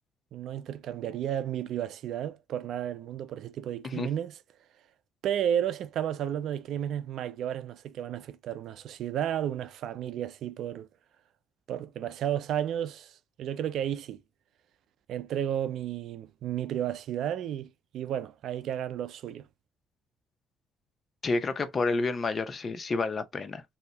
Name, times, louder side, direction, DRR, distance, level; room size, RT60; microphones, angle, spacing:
voice 1, 0.3-4.4 5.2-10.9 11.7-14.2 15.1-19.5, right 10 dB, 70° right, 0.5 m, -32 dB
voice 2, 21.2-23.6, left 3 dB, 35° left, 0.8 m, -29 dB
3.9 x 2.8 x 3.4 m
cardioid pair, 95°, 0 cm